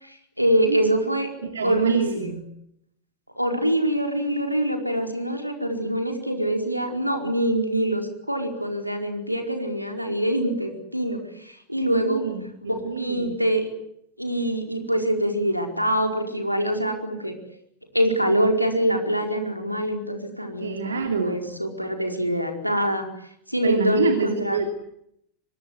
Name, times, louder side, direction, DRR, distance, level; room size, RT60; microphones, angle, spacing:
voice 1, 0.0-1.3 1.6-2.3 3.4-12.2 12.9-13.7 14.2-17.3 17.9-23.1 23.5-24.6, right 1 dB, 90° right, 4 dB, 4.8 m, -24 dB
voice 2, 1.4-2.4 11.9-13.3 20.6-21.4 23.6-24.7, right 5 dB, 70° right, 6 dB, 2.7 m, -26 dB
25.0 x 21.5 x 9.3 m, 0.75 s
figure-of-eight pair, 90°, 0 cm